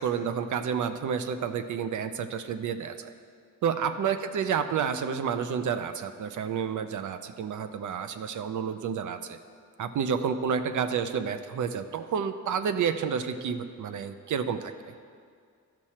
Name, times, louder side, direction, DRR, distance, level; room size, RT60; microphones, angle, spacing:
voice 1, 0.0-3.1 3.6-9.4 9.8-14.7, right 7 dB, 75° right, 9 dB, 0.6 m, -30 dB
12.5 x 6.1 x 4.3 m, 2.2 s
cardioid pair, 95°, 31 cm